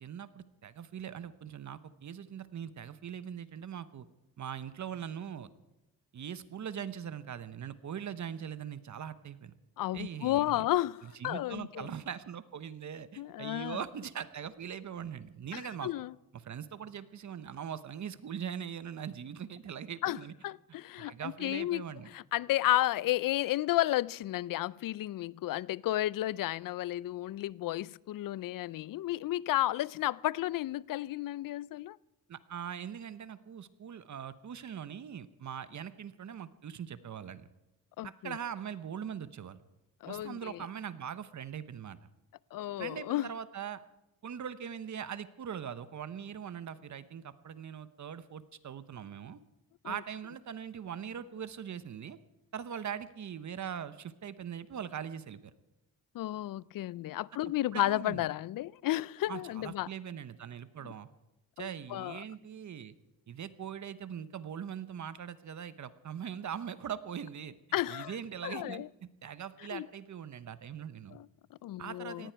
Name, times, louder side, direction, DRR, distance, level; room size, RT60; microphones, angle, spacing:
voice 1, 0.0-4.1 4.4-5.5 6.1-9.5 9.9-10.7 11.0-15.9 16.3-20.3 21.0-22.1 32.3-37.5 38.0-39.6 40.1-42.1 42.8-43.8 44.2-49.4 49.8-52.2 52.5-55.5 57.7-58.3 59.3-61.1 61.6-62.9 63.3-67.5 67.9-71.2 71.8-72.3, right 8 dB, 50° right, 1.0 m, -41 dB
voice 2, 9.8-11.9 13.2-13.8 15.5-16.1 20.0-20.2 20.4-21.8 22.1-32.0 38.0-38.4 40.0-40.7 42.5-43.3 49.8-50.0 56.1-59.9 60.8-60.9 61.6-62.2 67.7-68.2 68.4-68.9 69.7-69.9 71.1-72.3, left 15 dB, 65° left, 0.5 m, -32 dB
18.5 x 15.0 x 4.7 m
cardioid pair, 95°, 36 cm